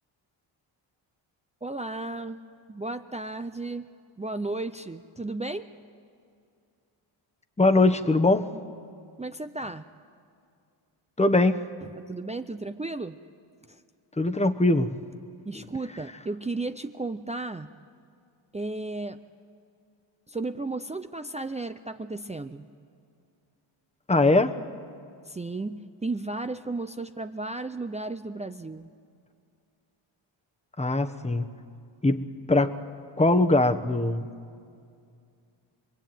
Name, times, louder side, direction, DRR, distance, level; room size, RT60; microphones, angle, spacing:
voice 1, 1.6-2.4 2.7-3.9 4.2-5.7 9.2-9.8 12.0-13.2 13.7-13.8 15.5-17.7 18.5-19.2 20.3-22.7 25.3-28.9, right 2 dB, 15° right, 8 dB, 0.6 m, -34 dB
voice 2, 7.6-8.5 11.2-11.7 14.2-14.9 24.1-24.5 30.8-31.4 32.0-32.8 33.2-34.3, left 2 dB, 15° left, 8 dB, 1.2 m, -21 dB
26.5 x 20.5 x 9.2 m, 2.3 s
cardioid pair, 85°, 50 cm